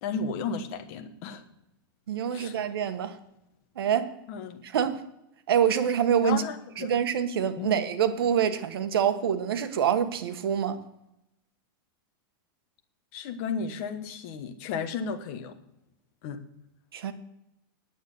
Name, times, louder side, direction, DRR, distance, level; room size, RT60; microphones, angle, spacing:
voice 1, 0.0-1.4 2.3-2.6 4.3-4.6 6.2-6.9 7.6-7.7 13.1-15.5 16.2-16.4, left 5 dB, 40° left, 1.3 m, -33 dB
voice 2, 2.1-3.2 3.8-4.1 4.6-5.0 5.5-6.4 6.8-10.8 16.9-17.1, right 8 dB, 90° right, 1.2 m, -26 dB
9.5 x 7.8 x 6.9 m
supercardioid pair, 160°, 12 cm